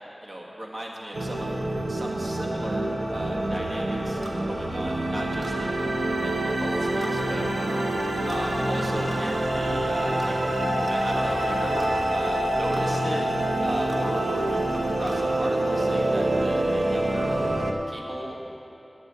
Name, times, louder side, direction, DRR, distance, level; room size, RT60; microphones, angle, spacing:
voice 1, 0.2-1.5 1.9-4.2 4.5-7.4 8.2-13.3 13.6-17.4 17.9-18.4, right 1 dB, 60° right, -2 dB, 1.7 m, -36 dB
sound 1, 1.1-17.7, right 1 dB, 80° right, 0.8 m, -26 dB
sound 2, 4.2-4.4 5.4-5.6 7.0-7.2 8.3-8.5 9.1-9.2 10.2-10.4 10.9-11.0 11.8-11.9 12.7-12.9 13.9-14.1 15.1-15.2, right 1 dB, 40° right, 1.5 m, -42 dB
15.5 x 8.0 x 3.9 m, 2.9 s
wide cardioid pair, 55°, 0 cm